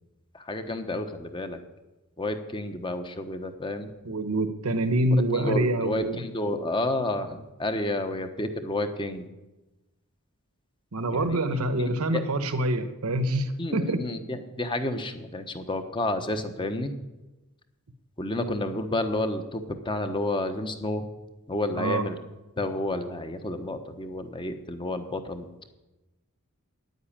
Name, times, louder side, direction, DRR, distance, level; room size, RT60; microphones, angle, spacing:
voice 1, 0.3-1.6 2.2-3.9 5.3-9.2 11.1-11.4 11.8-12.2 13.6-16.9 18.2-21.1 21.5-22.2 22.6-25.5, left 1 dB, 20° left, 8 dB, 1.0 m, -30 dB
voice 2, 4.0-6.2 10.9-14.0 21.8-22.1, right 1 dB, 80° right, 10 dB, 1.0 m, -26 dB
9.6 x 9.5 x 8.8 m, 1.1 s
head